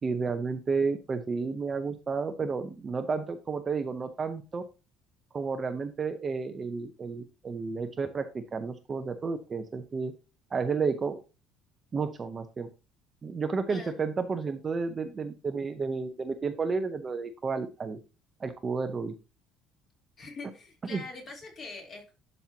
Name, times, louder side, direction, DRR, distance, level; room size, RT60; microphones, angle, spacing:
voice 1, 0.0-4.6 5.3-10.1 10.5-11.2 11.9-12.7 13.2-18.0 18.4-19.1 20.9-21.0, right 4 dB, 25° right, 7 dB, 0.7 m, -31 dB
voice 2, 13.7-14.0 20.2-22.1, left 3 dB, 35° left, 0 dB, 3.3 m, -43 dB
12.0 x 5.5 x 2.8 m, 0.30 s
cardioid pair, 155°, 0 cm